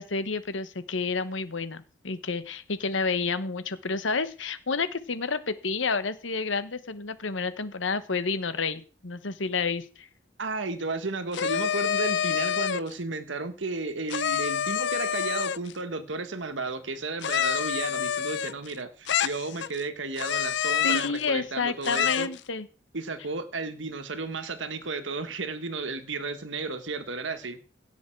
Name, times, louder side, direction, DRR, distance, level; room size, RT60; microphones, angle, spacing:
voice 1, 0.0-10.1 20.8-22.7, left 4 dB, 80° left, 1.1 m, -30 dB
voice 2, 10.4-22.3 22.9-27.6, right 3 dB, 75° right, 1.5 m, -33 dB
sound 1, 11.3-12.9 14.1-15.7 17.2-18.7 19.1-19.8 20.2-21.2 21.8-22.4, left 8 dB, 65° left, 0.4 m, -27 dB
16.5 x 7.1 x 4.6 m
head